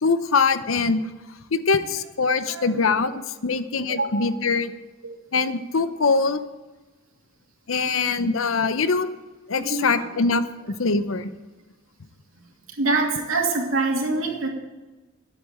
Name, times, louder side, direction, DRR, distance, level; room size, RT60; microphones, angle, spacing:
voice 1, 0.0-1.0 1.5-4.7 5.3-6.4 7.7-9.1 9.5-11.3, left 4 dB, 85° left, 12 dB, 0.8 m, -23 dB
voice 2, 3.9-4.2 5.0-5.2 8.2-8.3 9.6-10.1 12.8-14.5, right 3 dB, 90° right, 0 dB, 2.7 m, -25 dB
11.5 x 8.4 x 7.7 m, 1.2 s
head